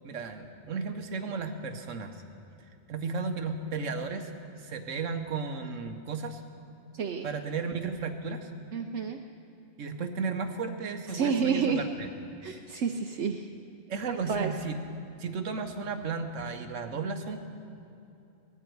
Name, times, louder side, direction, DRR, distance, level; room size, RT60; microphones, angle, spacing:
voice 1, 0.0-2.2 2.9-4.3 4.6-6.4 7.2-8.5 9.8-12.1 13.9-14.7 15.2-17.4, right 4 dB, 85° right, 6 dB, 1.4 m, -34 dB
voice 2, 6.9-7.3 8.7-9.2 11.1-11.9 12.4-13.5 14.1-14.5, right 6 dB, 70° right, 3 dB, 0.9 m, -30 dB
19.0 x 14.0 x 4.6 m, 2.7 s
omnidirectional pair, 1.3 m